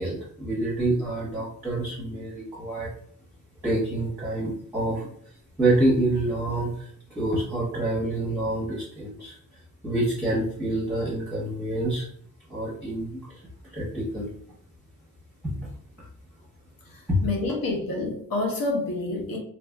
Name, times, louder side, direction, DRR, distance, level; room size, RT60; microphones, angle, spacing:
voice 1, 0.0-2.9 3.6-12.1 12.5-14.3 15.4-15.7 16.0-16.1 17.1-17.2, right 1 dB, 5° right, -8 dB, 0.9 m, -27 dB
voice 2, 16.8-19.4, left 2 dB, 65° left, -1 dB, 1.1 m, -28 dB
3.0 x 2.6 x 2.2 m, 0.62 s
wide cardioid pair, 145°, 37 cm